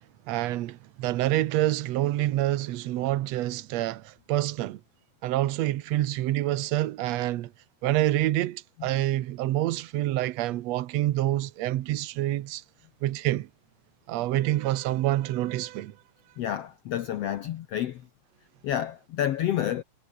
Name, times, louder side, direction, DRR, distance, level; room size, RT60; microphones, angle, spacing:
voice 1, 0.3-4.8 5.2-7.5 7.8-12.6 13.0-13.5 14.1-15.9, right 15 dB, 70° right, 1.6 m, -27 dB
voice 2, 16.4-18.0 18.6-19.8, left 11 dB, 80° left, 1.4 m, -29 dB
omnidirectional pair, 4.0 m